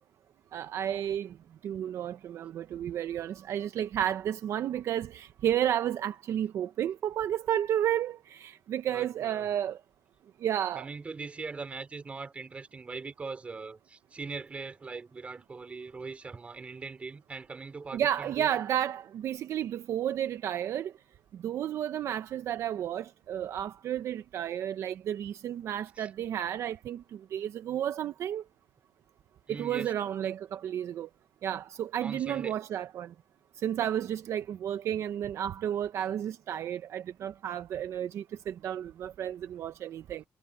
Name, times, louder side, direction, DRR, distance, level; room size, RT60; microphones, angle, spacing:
voice 1, 0.5-1.4 1.6-9.8 10.4-10.9 17.9-20.9 21.4-28.4 29.5-31.1 31.4-33.1 33.6-40.3, right 10 dB, 60° right, 0.6 m, -32 dB
voice 2, 8.9-9.5 10.8-18.6 26.0-26.1 29.5-29.9 32.0-32.6, right 4 dB, 25° right, 3.9 m, -41 dB
cardioid pair, 165°, 6 cm